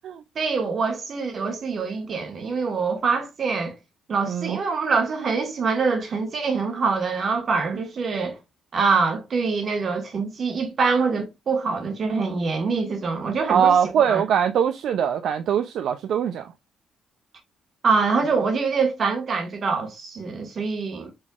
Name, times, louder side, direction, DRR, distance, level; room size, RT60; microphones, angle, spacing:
voice 1, 0.3-3.7 4.1-8.4 8.7-14.2 17.8-21.1, right 4 dB, 50° right, 1.4 m, -24 dB
voice 2, 4.3-4.6 13.5-16.4, right 8 dB, 70° right, 0.4 m, -22 dB
5.3 x 3.4 x 2.4 m
cardioid pair, 90°, 0 cm